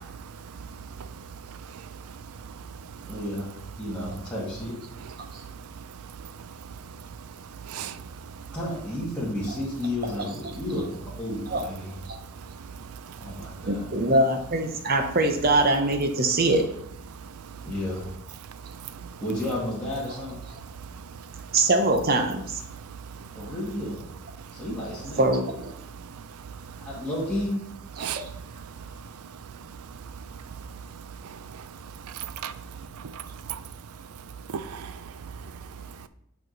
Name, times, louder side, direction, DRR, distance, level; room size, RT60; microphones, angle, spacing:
voice 1, 0.0-3.1 5.2-8.5 12.2-13.7 17.1-17.7 18.6-19.2 20.8-21.6 22.7-23.4 25.8-26.5 28.0-33.6 34.5-36.1, right 7 dB, 90° right, 14 dB, 0.4 m, -40 dB
voice 2, 3.1-4.8 8.5-10.8 11.2-12.0 13.2-13.9 17.6-18.1 19.2-20.4 23.3-24.1 24.5-25.3 26.9-27.6, left 1 dB, 5° left, -8 dB, 1.8 m, -32 dB
voice 3, 13.6-16.6 21.5-22.6 25.2-25.7 28.0-28.3, right 2 dB, 45° right, 5 dB, 0.8 m, -23 dB
7.7 x 4.7 x 3.9 m, 0.74 s
head